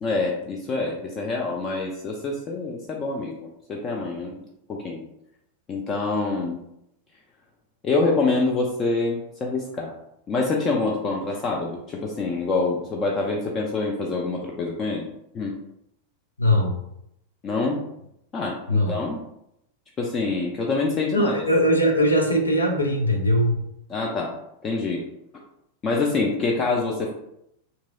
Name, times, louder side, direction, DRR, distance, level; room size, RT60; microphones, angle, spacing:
voice 1, 0.0-4.4 4.7-5.0 5.7-6.6 7.8-9.9 10.3-15.1 15.3-15.6 17.4-17.8 18.3-19.2 20.0-21.3 23.9-24.3 24.6-25.0 25.8-27.1, left 3 dB, 25° left, -1 dB, 0.4 m, -26 dB
voice 2, 16.4-16.8 18.7-19.0 21.1-23.6, equal, 80° left, 1 dB, 0.5 m, -20 dB
2.9 x 2.7 x 2.2 m, 0.79 s
figure-of-eight pair, 90°, 0 cm